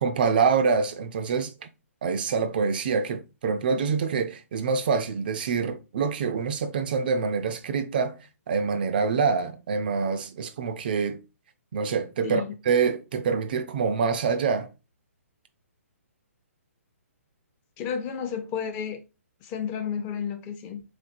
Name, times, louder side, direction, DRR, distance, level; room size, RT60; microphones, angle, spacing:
voice 1, 0.0-1.7 2.0-8.2 8.5-11.2 11.7-14.7, right 5 dB, 40° right, 0.3 m, -26 dB
voice 2, 12.2-12.5 17.8-19.0 19.4-20.8, left 7 dB, 20° left, 0.4 m, -32 dB
3.6 x 3.3 x 2.5 m
figure-of-eight pair, 130°, 8 cm